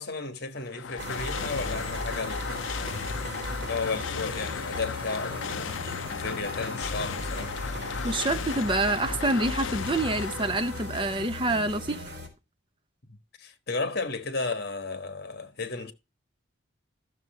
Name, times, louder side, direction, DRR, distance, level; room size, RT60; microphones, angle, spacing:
voice 1, 0.0-2.7 3.6-7.6 11.7-11.8 13.1-15.9, left 3 dB, 50° left, 1.4 m, -34 dB
sound 1, 0.6-11.4, left 6 dB, 65° left, 0.5 m, -35 dB
sound 2, 1.0-12.3, equal, 50° right, 3.7 m, -37 dB
voice 2, 8.0-12.1, right 2 dB, 25° right, 0.8 m, -27 dB
13.0 x 6.8 x 4.3 m
head